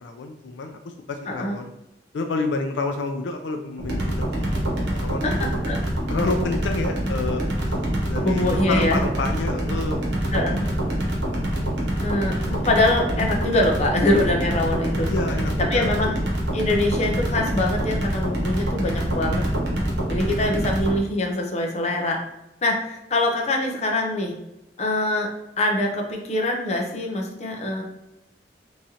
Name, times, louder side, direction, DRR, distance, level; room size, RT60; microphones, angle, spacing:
voice 1, 0.0-0.8 1.1-1.7 2.1-4.5 4.8-5.5 6.1-7.4 8.1-10.0 15.1-15.9 20.2-20.7, left 3 dB, 80° left, 5 dB, 0.4 m, -29 dB
sound 1, 3.8-21.0, right 1 dB, 85° right, 1.0 m, -25 dB
voice 2, 5.2-5.8 8.2-9.0 10.3-10.6 12.0-15.1 15.7-16.2 16.5-19.4 20.1-22.2 22.6-24.3 24.8-25.3 25.6-27.8, left 1 dB, 35° left, 1 dB, 0.6 m, -24 dB
3.6 x 3.1 x 2.7 m, 0.90 s
head